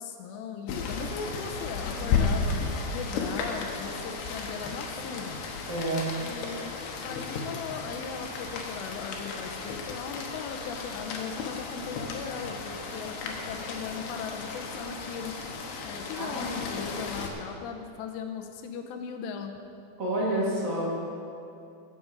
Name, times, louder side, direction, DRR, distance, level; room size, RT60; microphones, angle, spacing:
voice 1, 0.0-2.6 2.9-5.4 6.2-6.7 7.0-15.3 15.8-19.5, left 6 dB, 90° left, 5 dB, 2.9 m, -38 dB
Rain, 0.7-17.3, left 4 dB, 75° left, 3.0 m, -34 dB
voice 2, 5.7-6.0 16.1-16.6 20.0-21.0, right 1 dB, 30° right, -5 dB, 1.5 m, -29 dB
14.0 x 8.5 x 5.2 m, 2.5 s
omnidirectional pair, 5.0 m